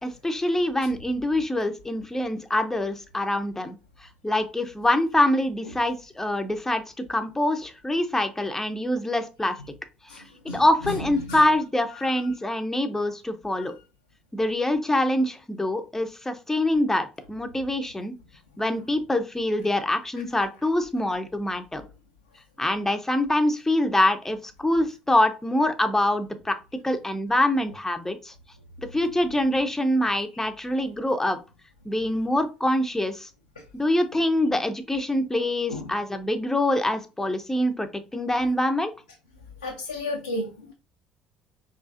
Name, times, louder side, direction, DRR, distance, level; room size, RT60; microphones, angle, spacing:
voice 1, 0.0-3.8 4.2-6.8 7.1-9.6 10.1-13.7 14.3-18.1 18.6-21.9 22.6-26.6 26.8-28.3 28.8-31.4 31.8-33.3 33.7-38.9, left 1 dB, 10° left, 8 dB, 0.7 m, -25 dB
voice 2, 10.1-11.0 11.3-11.4 12.0-12.1 13.6-13.7 35.7-35.9 39.6-40.7, left 2 dB, 90° left, 0 dB, 0.5 m, -33 dB
4.7 x 3.1 x 2.6 m, 0.30 s
figure-of-eight pair, 55°, 4 cm